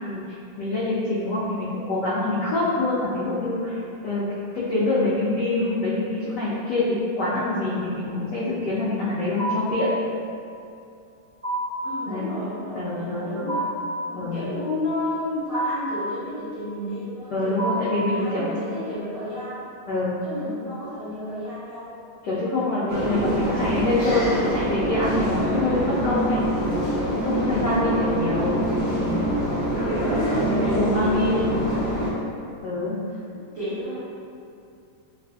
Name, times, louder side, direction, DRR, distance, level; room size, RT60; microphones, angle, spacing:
voice 1, 0.0-4.2 4.5-9.9 12.1-12.3 12.7-13.6 14.1-14.6 17.3-18.5 19.9-20.2 22.2-26.4 27.2-28.5 28.9-29.3 30.6-31.4 32.6-33.0, left 2 dB, 80° left, -9 dB, 0.9 m, -25 dB
sound 1, 9.4-9.9 11.4-11.9 13.5-14.0 15.5-16.0 17.6-18.1, right 1 dB, 20° right, 0.8 m, -28 dB
voice 2, 11.8-13.6 14.1-17.5 17.9-19.6 20.2-21.9 23.3-23.9 28.1-28.5 29.8-32.1 32.8-33.0 33.5-33.9, left 1 dB, 40° right, -16 dB, 1.5 m, -31 dB
sound 2, 22.9-32.1, right 1 dB, 60° right, 1.2 m, -25 dB
3.4 x 2.4 x 2.2 m, 2.5 s
omnidirectional pair, 2.3 m